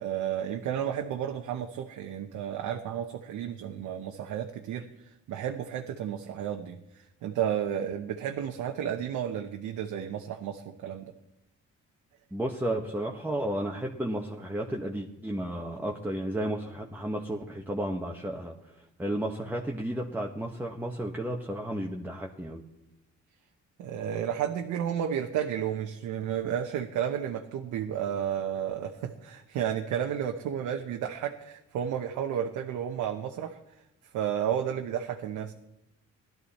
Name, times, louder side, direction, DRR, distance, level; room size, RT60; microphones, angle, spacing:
voice 1, 0.0-11.1 23.8-33.8 34.1-35.5, right 9 dB, 85° right, 3 dB, 1.0 m, -32 dB
voice 2, 12.3-22.6, right 1 dB, 5° right, 0 dB, 1.2 m, -33 dB
17.5 x 12.0 x 4.3 m, 0.85 s
cardioid pair, 90°, 30 cm